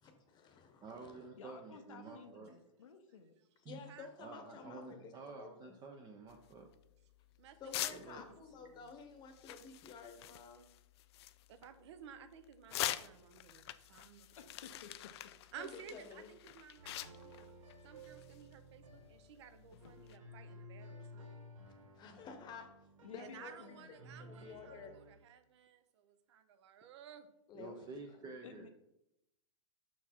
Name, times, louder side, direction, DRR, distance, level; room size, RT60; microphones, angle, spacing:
voice 1, 0.0-1.3 3.7-5.1 5.4-5.7 7.6-10.6 15.6-16.3 21.6-22.7 23.1-23.8 24.2-25.0 27.5-27.8, left 5 dB, 25° left, 7 dB, 1.0 m, -52 dB
voice 2, 0.8-2.6 3.6-3.8 4.2-6.7 7.9-8.3 20.0-20.1 21.0-21.1 27.5-28.7, right 4 dB, 25° right, 3 dB, 0.6 m, -50 dB
voice 3, 1.4-3.3 14.4-15.3 16.9-17.0 23.0-24.0 28.4-28.7, left 6 dB, 85° left, 5 dB, 0.7 m, -55 dB
sound 1, 6.3-20.2, left 14 dB, 55° left, 0.4 m, -47 dB
voice 4, 7.4-8.9 11.5-14.3 15.5-17.5 17.8-21.4 23.2-27.3, right 8 dB, 60° right, 10 dB, 0.8 m, -55 dB
sound 2, 16.8-25.1, equal, 80° right, 1.3 m, -55 dB
5.8 x 4.6 x 4.3 m, 0.84 s
hypercardioid pair, 130°, 16 cm